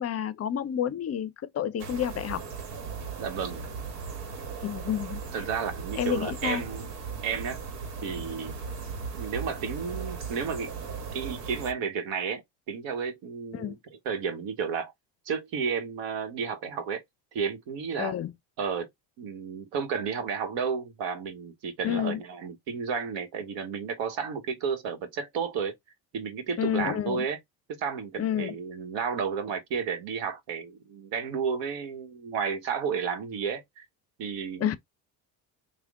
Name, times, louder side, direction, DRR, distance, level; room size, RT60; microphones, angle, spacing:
voice 1, 0.0-2.4 4.6-5.4 6.0-6.6 13.5-13.8 18.0-18.3 21.8-22.2 26.6-27.2 28.2-28.5 34.6-34.8, left 10 dB, 30° left, 0.5 m, -30 dB
sound 1, 1.8-11.7, right 5 dB, 85° right, 1.2 m, -37 dB
voice 2, 3.2-3.6 5.3-6.9 7.2-7.6 8.0-8.6 9.1-10.7 11.1-12.4 12.7-13.8 14.0-14.9 15.3-17.0 17.3-18.1 18.6-18.9 19.2-25.7 26.1-27.4 27.7-33.8 34.2-34.7, right 6 dB, 65° right, 1.2 m, -32 dB
3.4 x 2.2 x 3.5 m
supercardioid pair, 80°, 49 cm